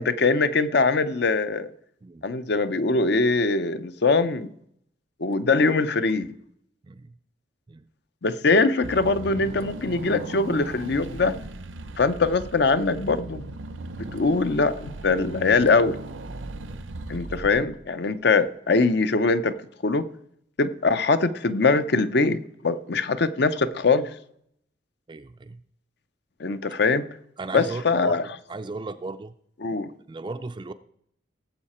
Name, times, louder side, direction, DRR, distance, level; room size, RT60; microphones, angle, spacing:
voice 1, 0.0-1.7 2.2-4.5 5.2-6.3 8.2-11.4 12.0-13.4 14.1-16.0 17.1-19.6 19.8-20.1 20.6-24.1 26.4-27.1 27.5-28.2 29.6-29.9, left 3 dB, 60° left, 0.6 m, -22 dB
Car / Engine, 8.8-18.0, right 2 dB, 85° right, 0.7 m, -37 dB
voice 2, 25.1-25.6 27.4-28.2 28.5-29.3 30.1-30.7, right 3 dB, 25° right, 0.3 m, -36 dB
18.0 x 7.3 x 4.3 m
head